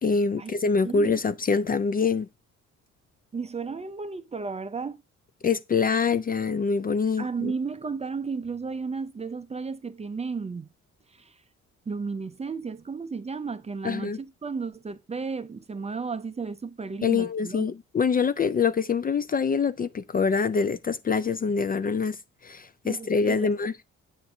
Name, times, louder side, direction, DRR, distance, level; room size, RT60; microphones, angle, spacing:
voice 1, 0.0-2.3 5.4-7.5 13.8-14.2 17.0-22.2 22.4-23.7, left 5 dB, 30° left, 0.4 m, -25 dB
voice 2, 3.3-5.0 7.2-10.7 11.1-11.4 11.9-17.7 22.8-23.5, right 4 dB, 20° right, 0.5 m, -33 dB
8.0 x 2.7 x 5.9 m
cardioid pair, 80°, 30 cm